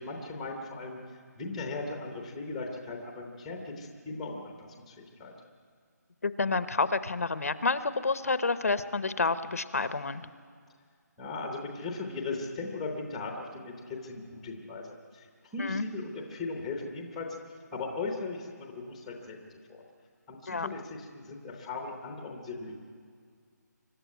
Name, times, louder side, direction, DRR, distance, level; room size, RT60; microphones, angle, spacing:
voice 1, 0.0-5.3 11.2-15.3 15.5-19.8 20.3-22.8, left 3 dB, ahead, 2 dB, 0.8 m, -38 dB
voice 2, 6.2-10.3 15.6-15.8 20.5-20.7, left 4 dB, 55° left, 12 dB, 0.8 m, -29 dB
24.5 x 12.0 x 9.4 m, 2.1 s
hypercardioid pair, 180°, 10 cm